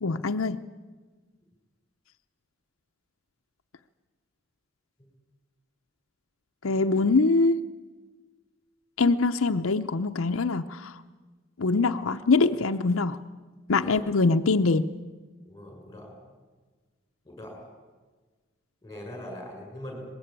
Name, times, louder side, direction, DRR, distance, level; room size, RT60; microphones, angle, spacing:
voice 1, 0.0-0.6 6.6-7.6 9.0-10.9 11.6-13.2 13.7-14.8, left 3 dB, 80° left, 7 dB, 0.7 m, -23 dB
voice 2, 13.8-14.1 15.4-16.1 17.2-17.7 18.8-20.1, left 1 dB, 15° left, 2 dB, 6.8 m, -41 dB
23.5 x 21.0 x 8.9 m, 1.4 s
head